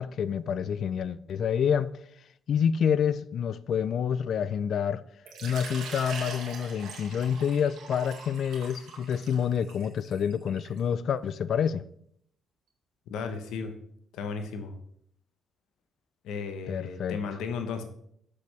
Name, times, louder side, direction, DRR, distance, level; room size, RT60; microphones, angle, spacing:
voice 1, 0.0-1.9 2.5-5.0 5.4-11.8 16.7-17.2, left 8 dB, 65° left, 0.4 m, -28 dB
Water / Liquid, 5.3-10.8, right 4 dB, 85° right, 1.9 m, -42 dB
voice 2, 13.1-13.7 14.1-14.7 16.2-17.8, left 5 dB, 90° left, 1.0 m, -34 dB
7.4 x 6.6 x 3.4 m
cardioid pair, 90°, 0 cm